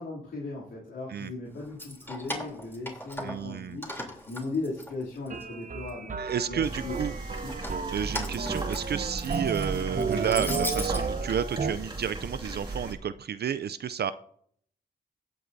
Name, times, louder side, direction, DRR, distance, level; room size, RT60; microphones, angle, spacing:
voice 1, 0.0-6.2 6.5-7.0 7.4-7.5, left 3 dB, 80° left, -7 dB, 2.8 m, -37 dB
Keys jangling, 1.6-3.5 3.8-5.4 5.9-6.6 7.4-11.0, left 1 dB, 10° left, 3.2 m, -38 dB
voice 2, 3.2-3.8 6.2-7.1 7.9-14.1, right 8 dB, 60° right, 13 dB, 0.4 m, -31 dB
sound 1, 5.3-11.7, right 4 dB, 45° right, 0.9 m, -33 dB
sound 2, 6.6-12.9, right 2 dB, 25° right, 2.2 m, -37 dB
16.5 x 7.8 x 2.7 m, 0.62 s
cardioid pair, 60°, 19 cm